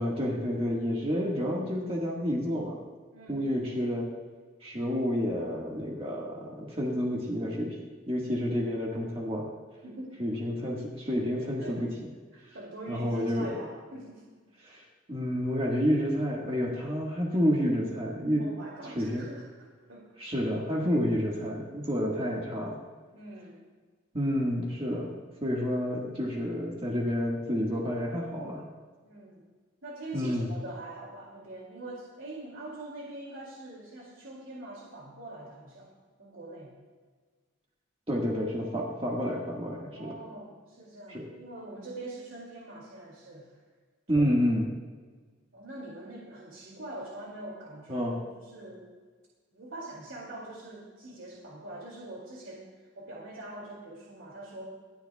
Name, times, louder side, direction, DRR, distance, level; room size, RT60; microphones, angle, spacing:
voice 1, 0.0-2.8 3.3-4.1 4.6-7.8 8.1-9.5 10.2-11.9 12.9-13.5 14.6-18.4 18.8-19.3 20.2-22.8 24.1-28.6 30.1-30.5 38.1-40.1 41.1-41.2 44.1-44.7 47.9-48.2, equal, 30° right, -3 dB, 1.7 m, -29 dB
voice 2, 3.1-3.5 9.8-10.2 11.4-11.8 12.5-14.4 18.4-20.1 23.1-23.6 25.7-25.8 29.0-29.4 29.8-35.9 36.2-36.7 39.9-43.6 44.1-44.3 45.5-48.9 49.5-54.6, right 2 dB, 75° right, -3 dB, 2.6 m, -44 dB
25.5 x 9.8 x 2.3 m, 1.5 s
head